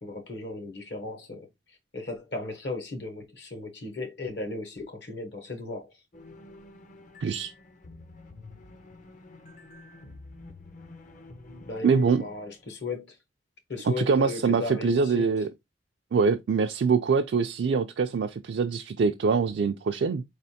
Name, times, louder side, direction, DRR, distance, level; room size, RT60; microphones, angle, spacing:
voice 1, 0.0-1.5 1.9-5.9 11.6-13.2 13.7-15.3, left 3 dB, 65° left, 1.0 m, -36 dB
sound 1, 6.1-12.8, left 2 dB, 45° left, 0.5 m, -49 dB
voice 2, 7.2-7.5 11.8-12.2 13.9-15.5 16.1-20.2, right 5 dB, 65° right, 0.3 m, -24 dB
4.4 x 3.3 x 2.7 m
head